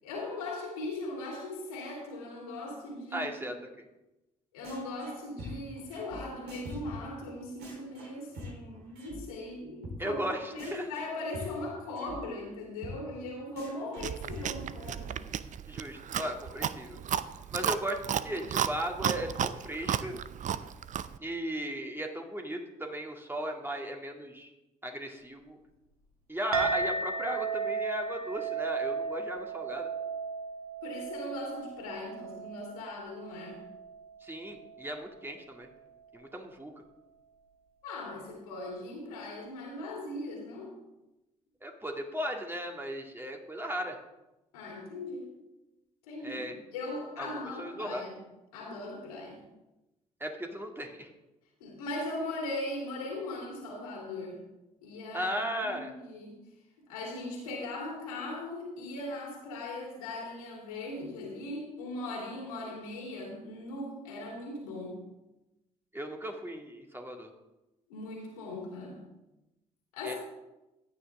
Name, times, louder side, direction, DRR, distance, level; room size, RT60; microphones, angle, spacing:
voice 1, 0.0-3.3 4.5-10.2 10.5-15.2 30.8-33.6 37.8-40.7 44.5-45.3 46.0-46.4 46.7-48.1 48.5-49.4 51.6-54.4 54.8-56.4 56.9-65.0 67.9-69.0 69.9-70.1, left 2 dB, 80° left, -2 dB, 3.1 m, -39 dB
voice 2, 3.1-3.9 10.0-10.9 15.7-17.0 17.5-20.2 21.2-24.5 24.8-25.6 26.3-29.9 34.2-35.7 36.1-36.7 41.6-44.0 46.2-46.5 47.2-48.0 50.2-51.1 55.1-55.9 65.9-67.3 70.0-70.1, equal, 10° right, 2 dB, 2.1 m, -36 dB
sound 1, 4.6-5.1 5.4-9.2 9.5-9.6 9.8-10.0 10.2-10.3 10.6-12.2 12.4-12.5 12.8-12.9 13.2-13.3 13.6-15.0, left 1 dB, 65° right, 4.1 m, -44 dB
Chewing mastication, 14.0-21.2, right 9 dB, 45° right, 0.6 m, -33 dB
Chink clink, 26.5-35.2, right 4 dB, 85° right, 1.1 m, -35 dB
15.0 x 9.7 x 3.6 m, 0.98 s
figure-of-eight pair, 45°, 18 cm